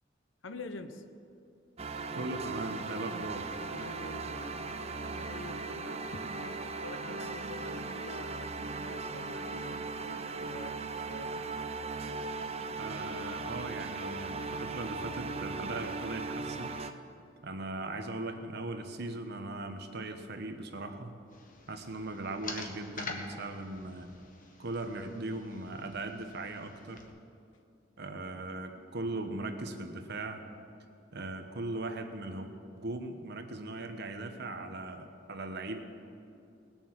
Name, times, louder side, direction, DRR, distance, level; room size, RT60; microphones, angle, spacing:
voice 1, 0.4-1.0 3.7-11.4, left 2 dB, 80° left, 10 dB, 0.8 m, -47 dB
sound 1, 1.8-16.9, right 3 dB, 35° right, 0.6 m, -38 dB
voice 2, 2.1-3.6 12.8-16.7 17.4-21.1 21.7-24.1 24.6-27.0 28.0-30.4 31.1-32.5 32.8-35.8, right 2 dB, 60° right, 6 dB, 1.1 m, -39 dB
sound 2, 21.3-27.1, left 3 dB, 45° left, 1.3 m, -46 dB
19.0 x 6.9 x 7.4 m, 2.5 s
head